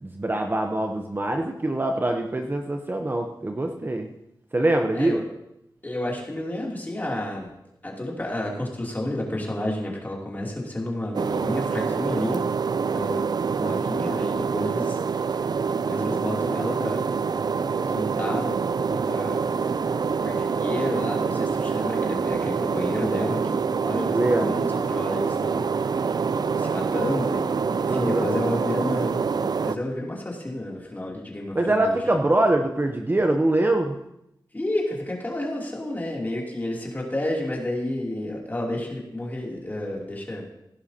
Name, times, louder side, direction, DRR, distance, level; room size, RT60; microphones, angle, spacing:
voice 1, 0.0-4.1 4.5-5.2 24.1-24.6 27.9-28.3 31.5-33.9, right 1 dB, 25° right, 4 dB, 0.8 m, -23 dB
voice 2, 5.8-7.5 7.8-12.4 12.9-13.3 13.6-15.0 15.9-17.2 17.7-18.6 18.9-19.4 20.2-25.7 26.3-32.2 34.5-40.5, left 1 dB, 25° left, -3 dB, 2.9 m, -31 dB
sound 1, 11.1-29.8, right 5 dB, 60° right, 0.4 m, -26 dB
16.5 x 11.0 x 2.8 m, 0.83 s
wide cardioid pair, 105°, 8 cm